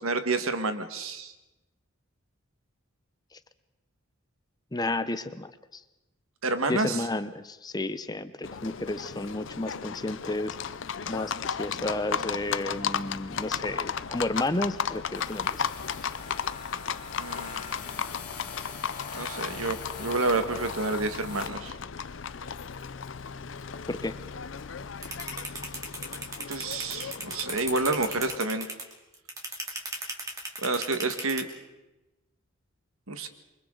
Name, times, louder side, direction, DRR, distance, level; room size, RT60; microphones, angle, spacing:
voice 1, 0.0-1.3 6.4-7.0 17.2-18.0 19.1-21.7 26.5-28.7 30.6-31.5 33.1-33.3, right 3 dB, 85° right, 8 dB, 1.7 m, -29 dB
voice 2, 4.7-5.8 6.7-10.5 11.1-15.5 16.0-16.1 23.9-24.2, left 2 dB, 20° left, 12 dB, 0.7 m, -32 dB
Livestock farm animals working animals, 8.4-28.4, left 6 dB, 60° left, 0.6 m, -35 dB
sound 1, 15.1-21.5, left 5 dB, 40° left, 2.7 m, -42 dB
sound 2, 25.0-31.4, right 2 dB, 15° right, 2.7 m, -35 dB
28.0 x 24.0 x 3.9 m, 1.0 s
head